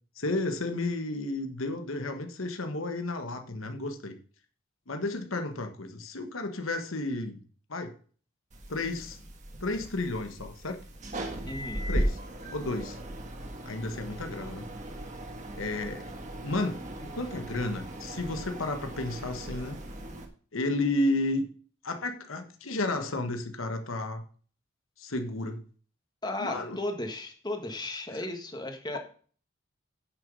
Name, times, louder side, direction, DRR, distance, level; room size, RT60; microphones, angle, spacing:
voice 1, 0.2-4.2 4.9-7.4 7.7-7.9 8.7-9.2 9.6-10.8 11.9-12.2 12.5-13.0 13.6-14.6 15.6-16.1 16.4-19.8 20.5-21.5 21.8-24.2 25.0-25.6 26.4-26.8 28.1-28.2, left 2 dB, 85° left, 6 dB, 1.3 m, -32 dB
sound 1, 8.5-20.3, right 1 dB, 35° right, 1.7 m, -37 dB
voice 2, 11.5-11.8 26.2-29.0, left 1 dB, 20° left, 5 dB, 1.6 m, -35 dB
10.0 x 6.3 x 5.3 m, 0.42 s
head